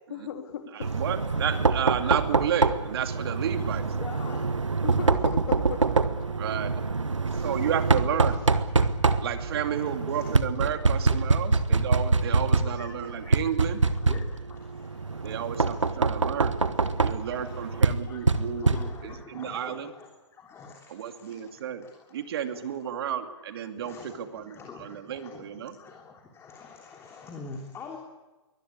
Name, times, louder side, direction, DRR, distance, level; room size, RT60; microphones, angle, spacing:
voice 1, 0.1-0.9 4.8-6.0, left 7 dB, 55° left, 4 dB, 3.8 m, -36 dB
voice 2, 0.7-3.9 6.4-6.7 7.4-8.4 9.2-13.8 15.2-16.6 17.0-18.7 19.0-19.9 20.9-21.8 22.1-25.8, right 9 dB, 55° right, 7 dB, 2.6 m, -32 dB
Knock, 0.8-19.2, right 4 dB, 90° right, 1.3 m, -25 dB
voice 3, 3.9-4.5 7.2-7.5 8.8-9.1 9.8-10.4 11.0-11.2 11.7-11.8 12.5-13.3 13.7-16.2 16.4-22.8 23.3-23.4 23.8-28.0, left 4 dB, 15° left, 1 dB, 3.3 m, -47 dB
23.0 x 20.5 x 8.5 m, 1.2 s
figure-of-eight pair, 125°, 15 cm